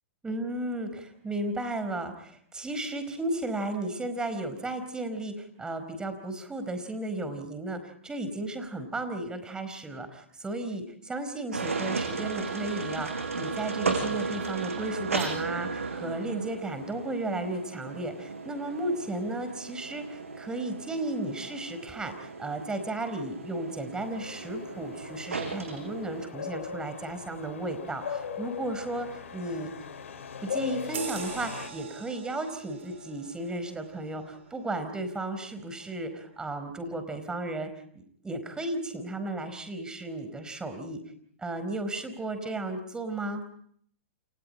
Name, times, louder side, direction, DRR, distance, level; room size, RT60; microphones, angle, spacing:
voice 1, 0.2-29.7 30.4-37.7 37.9-41.0 41.4-43.4, right 2 dB, 10° right, 9 dB, 4.8 m, -34 dB
sound 1, 11.5-26.3, right 4 dB, 90° right, 6.4 m, -35 dB
sound 2, 24.0-31.7, left 7 dB, 75° left, 6.4 m, -39 dB
sound 3, 30.9-35.9 36.3-36.5, right 6 dB, 70° right, 5.6 m, -44 dB
29.0 x 28.5 x 4.4 m, 0.62 s
hypercardioid pair, 120°, 7 cm